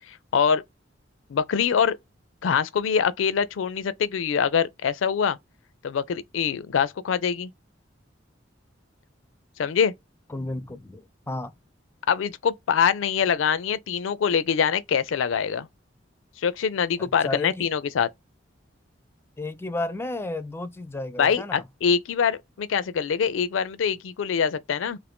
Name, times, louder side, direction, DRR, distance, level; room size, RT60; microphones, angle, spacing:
voice 1, 0.1-0.6 1.3-2.0 2.4-5.4 5.8-7.5 9.6-9.9 12.1-15.7 16.4-18.1 21.2-25.0, left 7 dB, 75° left, 0.4 m, -24 dB
voice 2, 10.3-11.5 17.0-17.7 19.4-21.6, left 2 dB, 15° left, 0.4 m, -32 dB
2.6 x 2.5 x 3.4 m
head